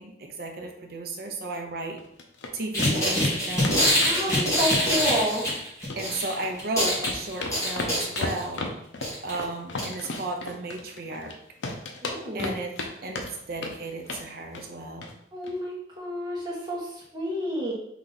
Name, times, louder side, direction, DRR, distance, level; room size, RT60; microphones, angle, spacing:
voice 1, 0.0-2.0 2.5-3.9 6.0-8.7 9.2-11.4 12.3-12.8 13.0-15.1, right 2 dB, 55° right, 3 dB, 0.6 m, -34 dB
sound 1, 2.0-2.5 2.8-2.9 3.2-3.4 3.6-5.6 5.9-6.6 6.9-11.3 11.6-12.9 13.2-13.8 14.1-14.3 14.5-14.7 15.0-15.1 15.4-15.5, left 2 dB, 80° left, 0.6 m, -34 dB
sound 2, 2.7-6.3 6.6-8.5 9.0-9.3 9.8-9.9 10.1-10.2, equal, 15° left, 1.5 m, -24 dB
voice 2, 4.0-5.4 12.0-12.5 15.3-17.7, equal, 25° right, -5 dB, 1.2 m, -30 dB
3.8 x 3.0 x 4.0 m, 0.76 s
head